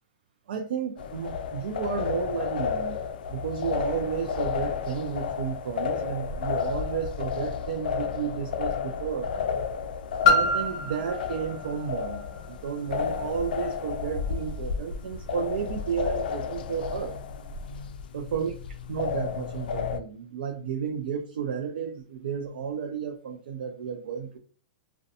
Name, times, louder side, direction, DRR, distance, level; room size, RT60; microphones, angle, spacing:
voice 1, 0.5-3.0 3.3-9.5 10.3-12.2 12.5-17.2 18.1-18.5 18.9-24.4, right 7 dB, 80° right, 0.4 m, -32 dB
sound 1, 1.0-20.0, left 7 dB, 70° left, 0.3 m, -32 dB
Piano, 10.2-15.7 16.4-16.5, left 3 dB, 45° left, 0.7 m, -29 dB
2.5 x 2.1 x 2.6 m
supercardioid pair, 175°, 5 cm